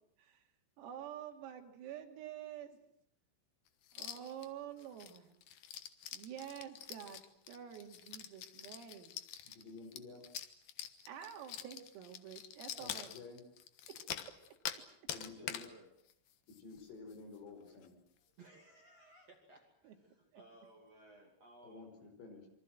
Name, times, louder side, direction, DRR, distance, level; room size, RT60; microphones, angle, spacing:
voice 1, 0.8-2.8 3.9-5.4 6.1-9.1 11.1-13.1 13.9-14.0 19.9-20.0 20.3-20.4, right 9 dB, 85° right, 4 dB, 5.2 m, -48 dB
sound 1, 3.9-4.5 4.8-14.8 15.1-15.7 16.1-16.2 16.5-16.8 17.1-17.2 17.7-17.9, left 10 dB, 70° left, 2.2 m, -46 dB
voice 2, 9.4-10.2 12.8-13.4 15.1-15.6 16.5-17.9 21.6-22.5, left 4 dB, 55° left, 6 dB, 6.8 m, -52 dB
voice 3, 15.3-15.9 18.2-21.9, right 2 dB, 40° right, 2 dB, 2.8 m, -60 dB
26.5 x 24.0 x 7.6 m, 0.68 s
omnidirectional pair, 6.0 m